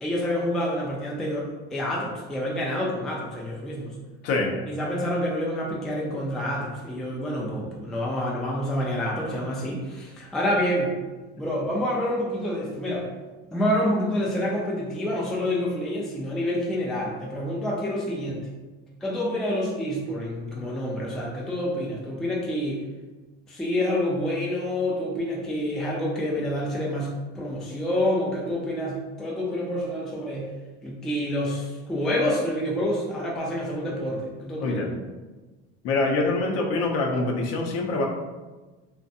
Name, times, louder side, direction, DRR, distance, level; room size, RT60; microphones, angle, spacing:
voice 1, 0.0-3.9 4.7-11.0 11.4-13.1 13.5-18.5 19.0-22.8 23.5-30.5 30.8-34.8, left 1 dB, ahead, -4 dB, 0.3 m, -28 dB
voice 2, 34.6-35.0 35.8-38.1, left 3 dB, 55° left, 1 dB, 0.6 m, -25 dB
2.5 x 2.2 x 2.6 m, 1.2 s
supercardioid pair, 110°, 30 cm